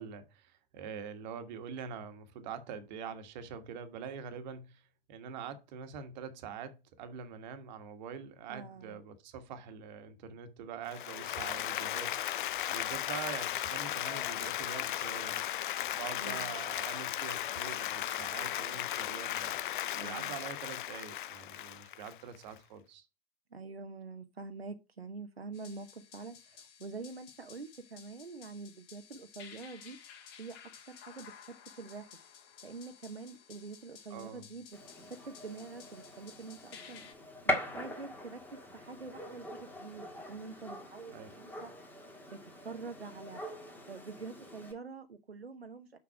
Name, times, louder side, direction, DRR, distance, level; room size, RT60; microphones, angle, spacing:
voice 1, 0.0-15.4 15.9-19.6 20.0-23.1 34.1-34.5 41.1-41.3, right 7 dB, 50° right, 1.5 m, -44 dB
voice 2, 8.5-9.0 16.1-16.6 19.9-20.4 23.5-30.0 30.4-30.6 30.9-32.1 32.6-37.0 37.5-41.7 42.3-43.4 43.9-46.0, right 4 dB, 90° right, 0.9 m, -46 dB
Applause, 10.9-22.6, left 13 dB, 55° left, 0.5 m, -36 dB
sound 1, 25.5-37.1, left 8 dB, 40° left, 2.2 m, -55 dB
Gunshot gunfire, 34.7-44.7, left 1 dB, 5° left, 1.7 m, -42 dB
6.1 x 6.0 x 4.7 m
figure-of-eight pair, 105°, 30 cm